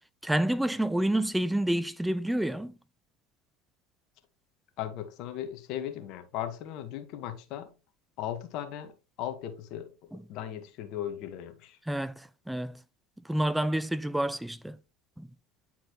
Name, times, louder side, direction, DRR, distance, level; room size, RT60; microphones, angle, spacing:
voice 1, 0.2-2.7 10.1-10.2 11.9-12.8 13.2-14.8 15.2-15.3, right 1 dB, 5° right, 0.6 m, -29 dB
voice 2, 4.8-7.7 8.2-8.9 9.2-9.9 10.3-11.8, left 11 dB, 55° left, 1.3 m, -37 dB
10.0 x 4.4 x 2.9 m
hypercardioid pair, 80°, 0 cm